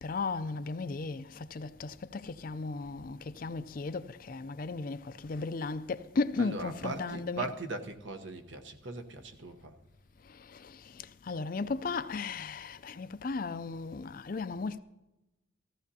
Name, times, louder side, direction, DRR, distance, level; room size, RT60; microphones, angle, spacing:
voice 1, 0.0-7.5 10.3-14.8, left 4 dB, 45° left, 0.4 m, -36 dB
voice 2, 6.4-9.8, right 3 dB, 70° right, 1.0 m, -39 dB
15.5 x 15.0 x 2.8 m
head